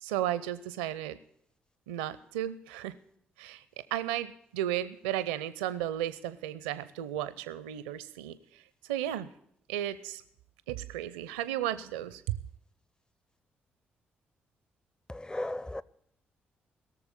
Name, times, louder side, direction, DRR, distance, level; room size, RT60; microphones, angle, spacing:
voice 1, 0.0-1.2 1.9-2.9 3.4-3.6 3.9-8.6 8.9-9.3 9.7-10.2 10.7-12.4, right 12 dB, 80° right, 0.5 m, -34 dB
voice 2, 15.1-15.8, left 1 dB, 15° left, 0.7 m, -35 dB
18.0 x 7.0 x 9.8 m
hypercardioid pair, 40°, 5 cm